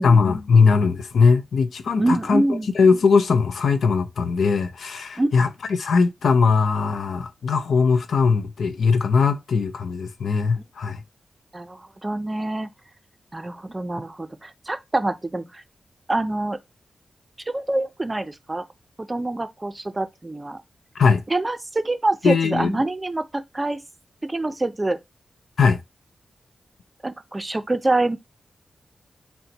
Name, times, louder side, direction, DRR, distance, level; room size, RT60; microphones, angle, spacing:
voice 1, 0.0-2.4 2.7-11.0 21.0-21.2 22.2-22.7 25.6-25.8, left 5 dB, 85° left, 0.5 m, -20 dB
voice 2, 2.0-2.7 5.2-5.3 11.5-12.7 13.3-15.6 16.1-16.6 17.5-18.6 19.0-20.6 21.3-23.8 24.2-25.0 27.0-28.2, right 2 dB, 25° right, 0.5 m, -25 dB
4.2 x 2.1 x 3.8 m
cardioid pair, 70°, 0 cm